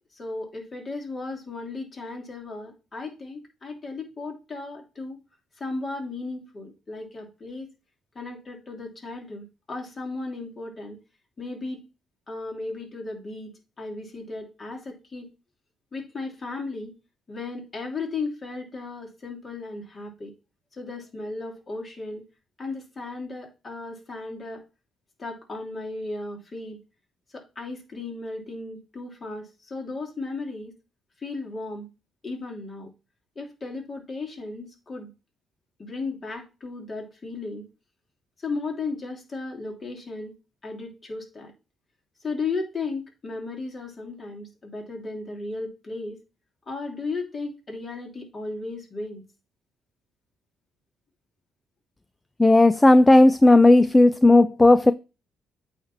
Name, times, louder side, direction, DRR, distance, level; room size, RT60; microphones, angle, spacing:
voice 1, 0.2-5.2 5.6-7.7 8.1-11.0 11.4-11.9 12.3-15.3 15.9-16.9 17.3-20.3 20.7-22.2 22.6-24.6 25.2-26.8 27.3-30.7 31.2-31.9 32.2-32.9 33.3-35.1 35.8-37.7 38.4-40.3 40.6-41.5 42.2-46.2 46.7-49.2, left 3 dB, 35° left, 3.0 m, -35 dB
voice 2, 52.4-54.9, left 2 dB, 15° left, 0.4 m, -14 dB
8.6 x 3.3 x 5.6 m
cardioid pair, 90°, 0 cm